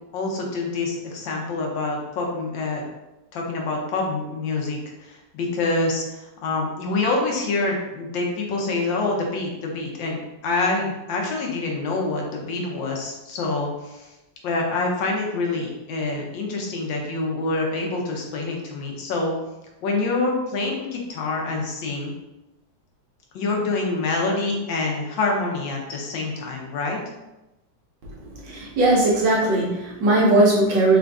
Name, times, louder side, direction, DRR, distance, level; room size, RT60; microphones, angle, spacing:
voice 1, 0.1-2.8 3.3-14.1 14.4-19.3 19.8-22.1 23.3-27.0, left 3 dB, 80° left, 0 dB, 1.5 m, -26 dB
voice 2, 28.4-31.0, right 2 dB, 75° right, -4 dB, 1.7 m, -18 dB
4.3 x 2.5 x 3.4 m, 0.98 s
omnidirectional pair, 2.0 m